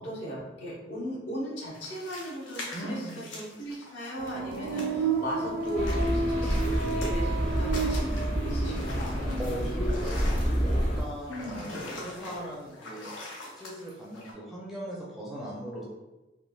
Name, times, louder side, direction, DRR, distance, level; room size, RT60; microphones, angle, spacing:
voice 1, 0.0-9.1 11.3-11.7, equal, 70° left, -6 dB, 0.9 m, -38 dB
sound 1, 1.7-5.3 5.6-14.3, left 2 dB, 90° left, 0.7 m, -42 dB
voice 2, 2.7-3.2 9.4-13.1 13.4-15.8, equal, ahead, -6 dB, 0.4 m, -39 dB
sound 2, 4.2-11.0 11.3-12.1, right 4 dB, 70° right, 0.3 m, -33 dB
sound 3, 5.7-11.0, equal, 35° left, 0.7 m, -28 dB
3.2 x 2.2 x 2.3 m, 1.1 s
head